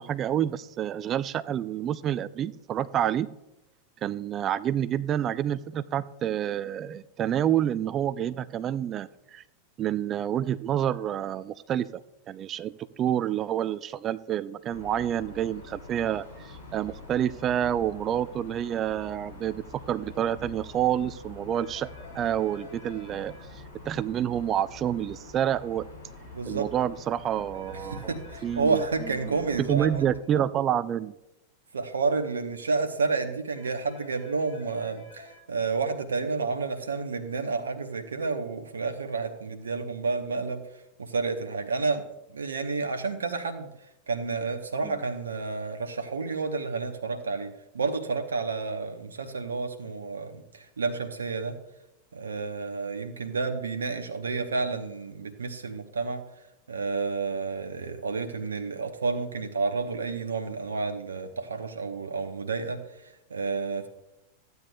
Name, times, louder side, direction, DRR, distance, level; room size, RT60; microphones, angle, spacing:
voice 1, 0.0-3.3 4.0-9.4 9.8-25.9 26.5-28.2 28.4-31.2 44.8-45.0, right 10 dB, 30° right, 16 dB, 0.3 m, -28 dB
sound 1, 14.7-30.1, left 3 dB, 80° left, 3.8 m, -46 dB
sound 2, 21.5-23.4 27.5-29.4 33.5-35.4, left 2 dB, 65° left, 3.5 m, -50 dB
voice 2, 26.3-26.7 27.7-30.0 31.7-40.6 41.0-42.0 42.3-43.7 44.1-51.6 52.1-56.2 56.7-62.8 63.3-63.9, right 4 dB, 70° right, 7 dB, 0.8 m, -30 dB
14.5 x 9.4 x 2.3 m, 0.90 s
figure-of-eight pair, 90°, 0 cm